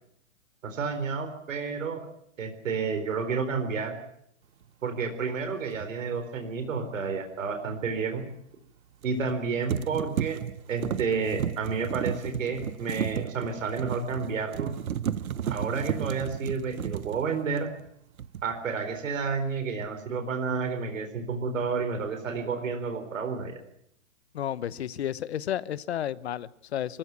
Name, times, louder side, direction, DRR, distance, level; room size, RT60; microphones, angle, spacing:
voice 1, 0.6-2.1 2.4-4.0 4.8-8.3 9.0-10.4 10.7-14.7 15.5-17.7 18.4-23.6, right 5 dB, 65° right, 6 dB, 4.2 m, -30 dB
sound 1, 5.7-5.9 9.0-9.4 9.7-17.9 18.2-18.6, right 9 dB, 85° right, 1.1 m, -33 dB
voice 2, 24.3-27.0, left 10 dB, 50° left, 17 dB, 1.0 m, -32 dB
24.5 x 15.0 x 9.7 m, 0.72 s
hypercardioid pair, 170°, 41 cm